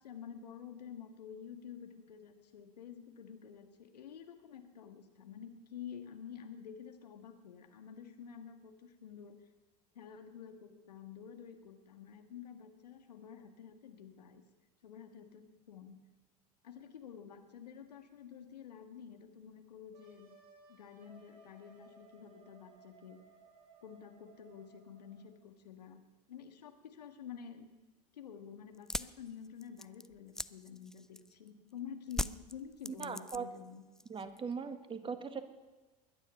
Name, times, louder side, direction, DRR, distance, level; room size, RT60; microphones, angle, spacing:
voice 1, 0.0-9.4 9.9-14.4 14.8-16.0 16.6-20.3 20.7-23.2 23.8-26.0 26.3-27.7 28.1-33.8, left 8 dB, 80° left, 6 dB, 1.7 m, -50 dB
Wind instrument woodwind instrument, 19.9-25.4, right 2 dB, 65° right, 5.4 m, -62 dB
sound 1, 28.7-31.5 32.1-33.7 33.9-34.5, left 1 dB, 5° left, 0.4 m, -40 dB
voice 2, 33.0-33.4 34.1-35.4, right 6 dB, 25° right, 9 dB, 1.7 m, -39 dB
21.0 x 9.9 x 5.6 m, 1.2 s
hypercardioid pair, 80°, 21 cm